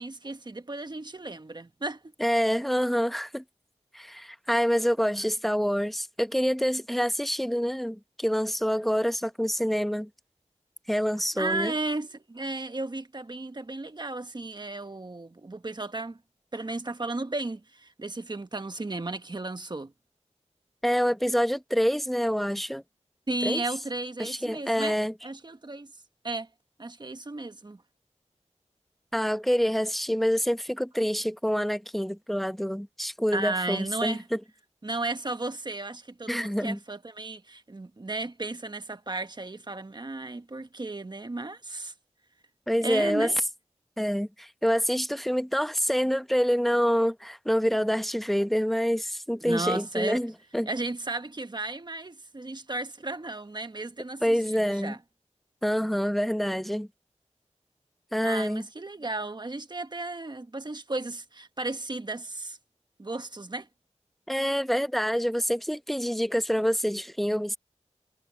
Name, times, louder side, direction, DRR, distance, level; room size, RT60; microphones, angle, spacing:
voice 1, 0.0-2.0 11.4-16.2 16.5-19.9 23.3-25.0 25.2-25.9 26.2-26.5 26.8-27.8 33.3-34.2 34.8-41.9 42.8-43.4 49.4-50.2 50.7-55.0 58.2-62.6 63.0-63.7, right 2 dB, 35° right, 1.3 m, -34 dB
voice 2, 2.2-3.4 3.9-10.1 10.9-11.7 20.8-22.8 23.4-23.6 24.2-25.1 29.1-34.4 36.3-36.8 42.7-43.3 44.0-50.7 54.2-54.9 55.6-56.9 58.1-58.6 64.3-67.6, equal, ahead, 0.9 m, -26 dB
wide cardioid pair, 80°, 12 cm